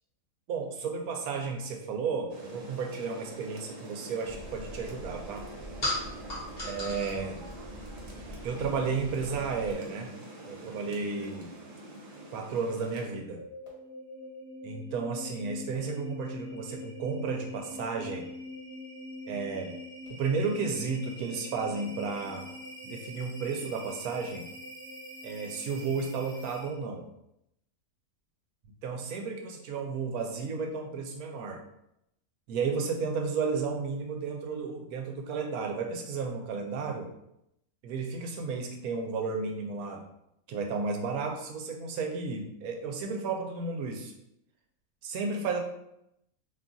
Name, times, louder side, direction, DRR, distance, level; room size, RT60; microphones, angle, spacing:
voice 1, 0.5-5.5 6.6-7.5 8.4-10.1 10.5-11.5 12.3-13.4 14.6-18.3 19.3-19.7 20.1-22.5 22.8-24.5 25.2-27.1 28.8-31.6 32.5-37.1 37.8-40.0 40.5-44.1 45.0-45.6, right 4 dB, 90° right, 2 dB, 1.1 m, -33 dB
Rain, 2.3-13.1, right 2 dB, 65° right, 1.1 m, -45 dB
sound 1, 4.3-9.7, left 1 dB, 45° left, 1.2 m, -39 dB
sound 2, 13.0-26.9, left 1 dB, 25° left, 1.0 m, -44 dB
2.8 x 2.3 x 3.8 m, 0.80 s
omnidirectional pair, 1.5 m